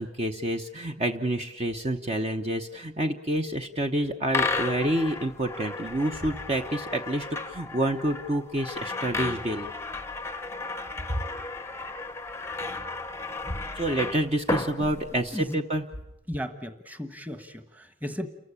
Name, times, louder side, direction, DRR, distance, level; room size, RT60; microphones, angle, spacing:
voice 1, 0.0-9.7 13.7-15.8, right 1 dB, 30° right, 5 dB, 0.9 m, -28 dB
sound 1, 4.3-15.5, left 3 dB, 15° left, 0.8 m, -34 dB
voice 2, 15.1-15.6 16.3-18.3, equal, 10° right, 9 dB, 1.3 m, -36 dB
29.0 x 15.0 x 8.7 m, 0.89 s
head